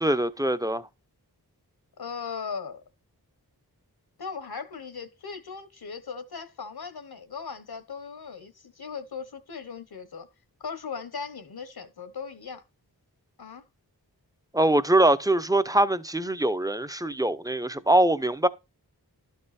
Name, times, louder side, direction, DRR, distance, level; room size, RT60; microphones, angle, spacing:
voice 1, 0.0-0.8 14.5-18.5, right 1 dB, 10° right, 0.6 m, -23 dB
voice 2, 2.0-2.8 4.2-10.3 10.6-12.6 13.4-13.6, left 5 dB, 70° left, 1.1 m, -38 dB
12.0 x 5.5 x 4.2 m
wide cardioid pair, 70°, 39 cm